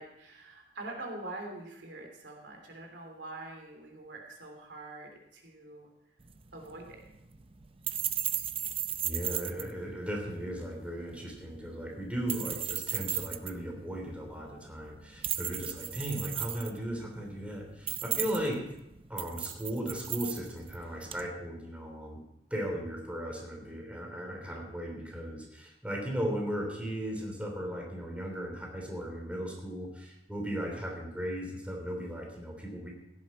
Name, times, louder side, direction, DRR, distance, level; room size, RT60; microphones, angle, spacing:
voice 1, 0.0-5.9 6.5-7.0, right 2 dB, 80° right, 2 dB, 3.1 m, -44 dB
sound 1, 6.2-21.3, right 10 dB, 30° right, 0.6 m, -37 dB
voice 2, 9.0-18.7 19.1-22.2 22.5-32.9, equal, 10° right, 0 dB, 3.1 m, -37 dB
16.0 x 11.0 x 4.3 m, 0.86 s
head